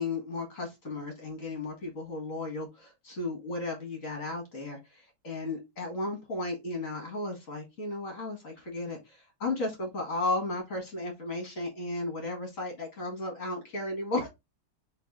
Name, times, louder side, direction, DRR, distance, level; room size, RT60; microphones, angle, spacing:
voice 1, 0.0-14.3, left 2 dB, 40° left, 2 dB, 1.9 m, -34 dB
4.0 x 3.2 x 3.8 m, 0.21 s
omnidirectional pair, 2.2 m